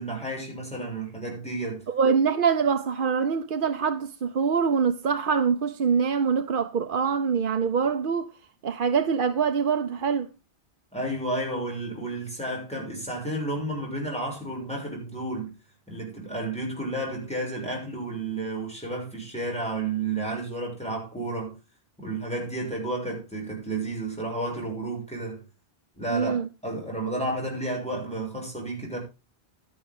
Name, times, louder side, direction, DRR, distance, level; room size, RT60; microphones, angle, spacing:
voice 1, 0.0-1.8 10.9-15.5 15.9-21.6 22.0-25.4 26.0-29.0, right 2 dB, 5° left, 6.8 m, -31 dB
voice 2, 1.9-8.3 8.6-10.3 26.1-26.5, right 6 dB, 55° right, 0.9 m, -24 dB
12.5 x 11.0 x 3.7 m
omnidirectional pair, 1.1 m